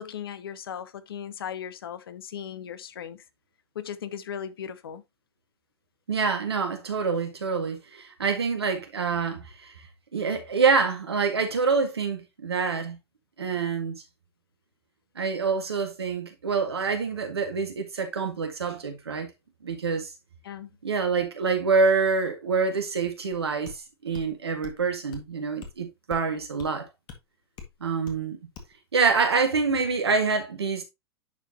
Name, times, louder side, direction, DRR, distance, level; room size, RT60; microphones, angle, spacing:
voice 1, 0.0-3.2 3.7-5.0 20.4-20.7, left 8 dB, 65° left, 0.8 m, -37 dB
voice 2, 6.1-9.7 10.1-13.0 13.4-14.0 15.2-19.3 19.6-20.1 20.8-23.7 24.0-26.9 27.8-28.4 28.9-30.8, right 5 dB, 75° right, 1.8 m, -26 dB
sound 1, 23.3-23.4 23.7-23.8 24.1-24.3 24.6-24.8 25.1-25.3 25.6-25.8 26.1-26.3 26.6-26.7 27.1-27.2 27.6-27.7 28.1-28.2 28.6-28.7, left 6 dB, 35° left, 1.8 m, -43 dB
10.5 x 4.6 x 2.8 m
figure-of-eight pair, 95°, 13 cm